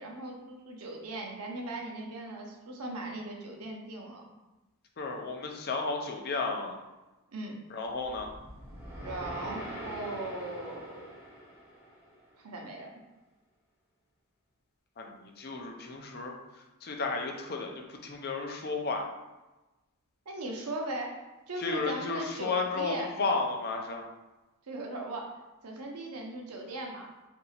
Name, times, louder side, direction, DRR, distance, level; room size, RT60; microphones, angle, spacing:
voice 1, 0.0-4.2 7.3-7.6 8.9-11.2 12.4-12.9 20.3-23.1 24.6-27.1, right 2 dB, 80° right, 0 dB, 0.7 m, -39 dB
voice 2, 5.0-6.8 7.7-8.3 15.0-16.3 16.8-19.1 21.6-24.0, left 3 dB, 45° left, 2 dB, 0.5 m, -33 dB
sound 1, 8.0-12.3, equal, 10° right, 0.7 m, -43 dB
2.8 x 2.6 x 4.2 m, 1.1 s
head